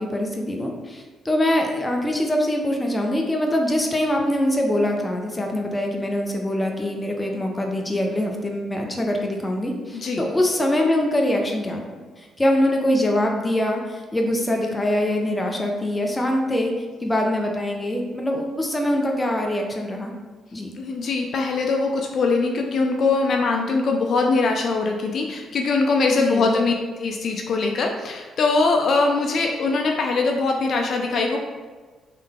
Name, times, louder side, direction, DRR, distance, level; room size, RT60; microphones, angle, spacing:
voice 1, 0.0-11.8 12.2-16.7 17.0-20.1 20.5-20.7 26.1-26.6, left 1 dB, 15° left, 1 dB, 0.7 m, -23 dB
voice 2, 9.9-10.3 20.8-26.7 27.0-31.4, left 3 dB, 55° left, 2 dB, 0.4 m, -22 dB
3.7 x 3.2 x 3.5 m, 1.4 s
cardioid pair, 90°, 0 cm